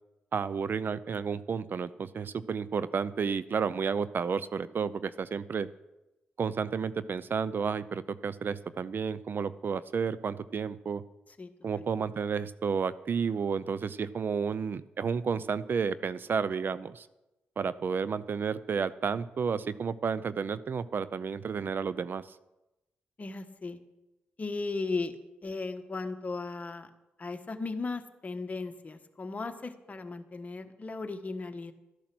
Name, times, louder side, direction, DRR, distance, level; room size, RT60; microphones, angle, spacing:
voice 1, 0.3-5.7 6.4-11.0 11.6-17.1 17.6-22.3, right 6 dB, 55° right, 16 dB, 0.5 m, -31 dB
voice 2, 11.4-11.8 23.2-23.8 24.4-25.1 25.4-26.9 27.2-31.7, left 3 dB, 40° left, 7 dB, 1.3 m, -36 dB
13.5 x 10.5 x 6.1 m, 0.98 s
cardioid pair, 65°, 4 cm